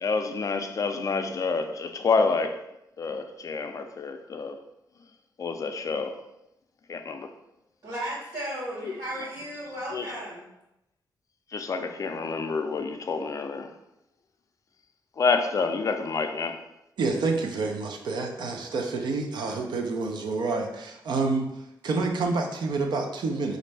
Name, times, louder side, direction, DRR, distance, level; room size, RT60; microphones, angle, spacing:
voice 1, 0.0-2.6 3.0-4.6 5.4-6.2 6.9-7.3 8.9-9.0 9.9-10.1 11.5-13.7 15.2-16.6, left 4 dB, 45° left, 6 dB, 0.4 m, -28 dB
voice 2, 7.8-10.5, right 1 dB, 50° right, -9 dB, 1.2 m, -35 dB
voice 3, 17.0-21.5 21.8-23.6, right 3 dB, 70° right, 3 dB, 0.6 m, -28 dB
4.2 x 2.5 x 3.3 m, 0.88 s
cardioid pair, 110°, 8 cm